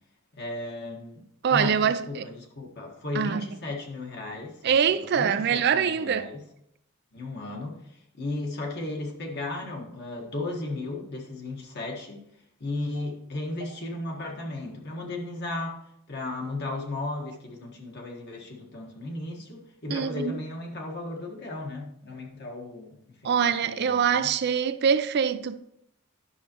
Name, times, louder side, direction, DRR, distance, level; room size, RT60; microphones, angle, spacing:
voice 1, 0.3-6.4 7.1-12.2 12.6-24.3, left 2 dB, 50° left, 1.6 m, -35 dB
voice 2, 1.4-2.3 3.2-3.5 4.6-6.3 19.9-20.4 23.2-25.6, right 7 dB, 50° right, 0.4 m, -24 dB
10.5 x 6.4 x 3.0 m
head